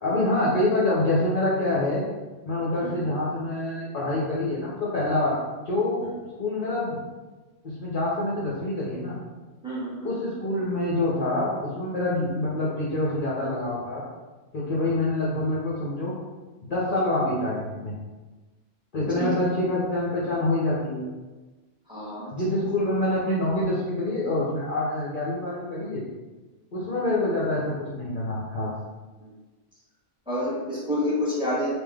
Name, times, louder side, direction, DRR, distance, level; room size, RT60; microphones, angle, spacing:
voice 1, 0.0-2.1 2.4-5.3 5.7-6.1 6.4-7.0 7.6-9.2 10.0-14.0 14.5-16.1 16.6-17.9 18.9-21.0 22.3-26.0 26.7-28.7, left 1 dB, 50° left, -6 dB, 0.8 m, -26 dB
voice 2, 9.6-10.1 19.2-19.3 21.9-22.3 29.2-29.3 30.3-31.7, left 1 dB, 5° right, -7 dB, 1.2 m, -28 dB
3.6 x 2.8 x 3.4 m, 1.2 s
omnidirectional pair, 1.2 m